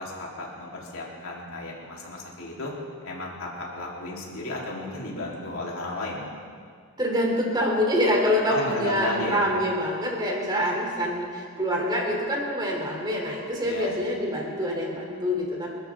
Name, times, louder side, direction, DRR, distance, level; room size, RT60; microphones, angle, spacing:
voice 1, 0.0-2.7 3.0-6.3 8.5-9.5 13.6-13.9, left 2 dB, 75° left, -4 dB, 3.6 m, -33 dB
voice 2, 7.0-15.7, equal, 20° right, -1 dB, 3.2 m, -26 dB
27.0 x 13.0 x 3.7 m, 2.1 s
head